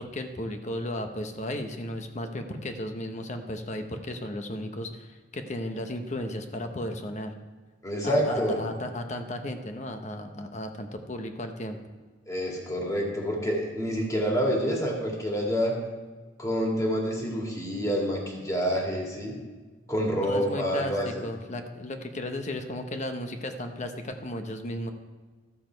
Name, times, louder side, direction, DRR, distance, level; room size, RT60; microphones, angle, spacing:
voice 1, 0.0-7.3 8.0-11.8 20.2-24.9, left 1 dB, 40° left, 6 dB, 0.9 m, -35 dB
voice 2, 7.8-8.6 12.3-15.7 16.4-19.3 19.9-21.2, equal, 20° left, -1 dB, 2.1 m, -27 dB
12.5 x 7.2 x 4.5 m, 1.4 s
head